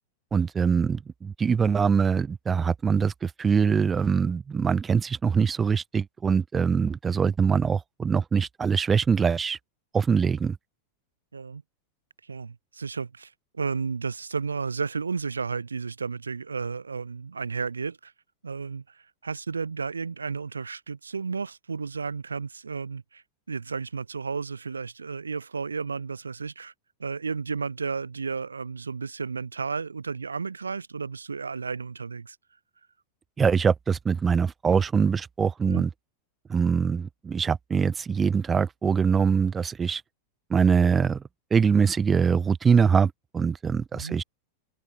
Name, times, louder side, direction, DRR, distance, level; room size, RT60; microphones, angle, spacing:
voice 1, 0.3-9.6 9.9-10.6 33.4-35.9 36.5-40.0 40.5-41.2 41.5-44.2, right 6 dB, 20° right, 1.1 m, -23 dB
voice 2, 12.2-18.1 18.4-26.7 27.0-32.4 35.6-35.8 43.9-44.2, right 5 dB, 75° right, 2.6 m, -33 dB
figure-of-eight pair, 90°, 0 cm